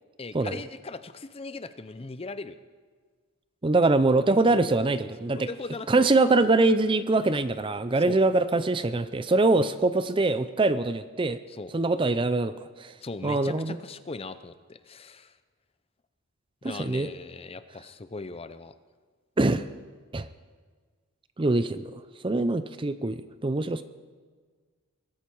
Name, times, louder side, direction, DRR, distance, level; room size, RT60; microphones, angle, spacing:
voice 1, 0.2-2.6 4.3-4.6 5.3-6.1 8.0-8.2 11.5-11.7 13.0-15.3 16.6-18.7, left 3 dB, 25° left, 12 dB, 0.5 m, -39 dB
voice 2, 3.6-5.5 5.9-11.4 11.7-12.9 13.2-13.8 16.6-17.1 19.4-19.7 20.1-20.3 21.4-23.8, right 2 dB, 20° right, 12 dB, 0.5 m, -24 dB
22.0 x 13.5 x 4.6 m, 1.5 s
head